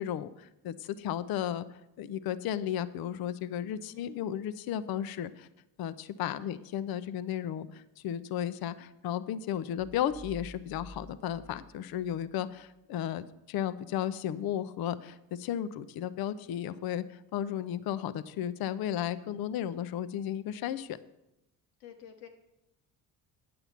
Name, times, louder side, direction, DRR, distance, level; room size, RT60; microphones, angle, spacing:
voice 1, 0.0-1.6 2.0-5.5 5.8-21.0, left 10 dB, 50° left, 13 dB, 0.6 m, -34 dB
sound 1, 9.8-12.7, equal, 5° right, 0.6 m, -50 dB
voice 2, 21.8-22.3, left 9 dB, 85° left, 5 dB, 1.1 m, -51 dB
9.2 x 6.8 x 5.8 m, 0.88 s
hypercardioid pair, 50°, 46 cm